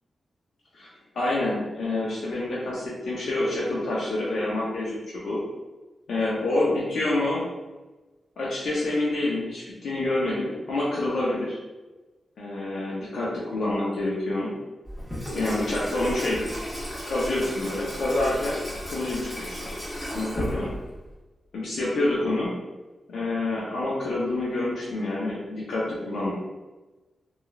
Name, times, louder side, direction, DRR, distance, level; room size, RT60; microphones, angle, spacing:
voice 1, 1.1-5.4 6.1-7.5 8.4-11.6 12.4-14.6 15.3-16.4 17.1-19.7 20.1-20.8 21.5-22.6 23.1-26.3, left 2 dB, 80° left, -5 dB, 0.5 m, -27 dB
Water tap faucet / Sink (filling or washing), 14.9-21.1, equal, 20° left, 1.3 m, -34 dB
3.0 x 2.3 x 2.2 m, 1.2 s
cardioid pair, 60°, 0 cm